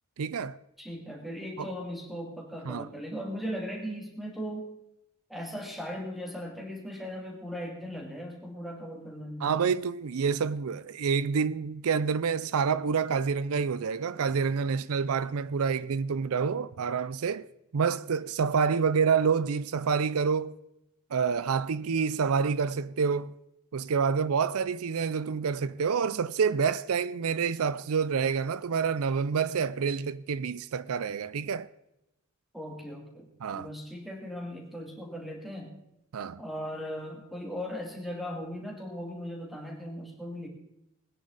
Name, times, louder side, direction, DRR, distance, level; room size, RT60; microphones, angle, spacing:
voice 1, 0.2-0.6 1.6-1.7 2.7-2.9 9.4-17.5 17.7-20.5 21.1-23.3 23.7-31.7 33.4-33.7 36.1-36.4, right 6 dB, 85° right, 0.5 m, -28 dB
voice 2, 0.8-4.7 5.3-9.5 32.5-35.7 36.4-40.5, equal, ahead, 2.5 m, -38 dB
20.5 x 9.9 x 4.0 m
head